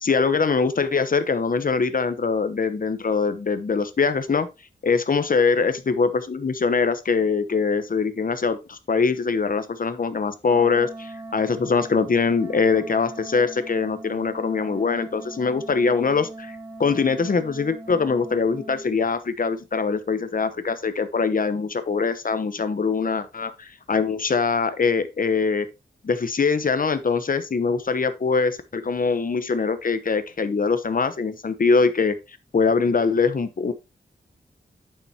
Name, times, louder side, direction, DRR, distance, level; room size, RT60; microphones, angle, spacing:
voice 1, 0.0-4.5 4.8-25.7 26.0-32.2 32.5-33.7, left 5 dB, 50° left, 1.0 m, -23 dB
Wind instrument woodwind instrument, 10.4-18.9, right 2 dB, 10° right, 2.8 m, -40 dB
8.9 x 6.9 x 2.9 m
wide cardioid pair, 125°, 18 cm